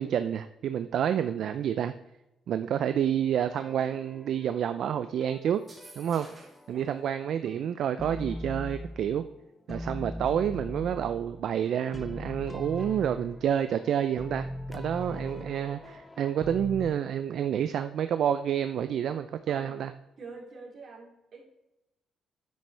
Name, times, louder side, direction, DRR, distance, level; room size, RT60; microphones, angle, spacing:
voice 1, 0.0-1.9 2.5-5.6 6.0-6.3 6.7-9.2 9.7-19.9, right 9 dB, 70° right, 10 dB, 0.4 m, -29 dB
sound 1, 3.6-4.8 5.2-7.1 7.5-9.4 9.7-16.9, left 1 dB, 15° left, 0.7 m, -41 dB
sound 2, 5.5-6.7, right 2 dB, 30° right, 2.8 m, -51 dB
voice 2, 19.5-19.8 20.2-21.4, right 4 dB, 50° right, -2 dB, 3.2 m, -46 dB
9.5 x 8.3 x 3.3 m, 0.92 s
cardioid pair, 90°, 0 cm